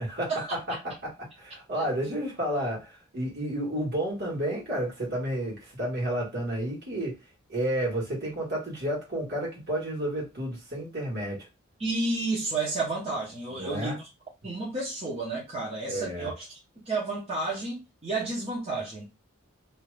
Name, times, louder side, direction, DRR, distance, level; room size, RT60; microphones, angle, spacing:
voice 1, 0.0-7.2 7.5-11.5 13.5-14.0 15.9-16.3, right 1 dB, 55° right, 1.5 m, -31 dB
voice 2, 11.8-14.1 14.4-16.6 16.9-19.0, right 3 dB, 30° right, 0.9 m, -31 dB
2.7 x 2.4 x 3.2 m
head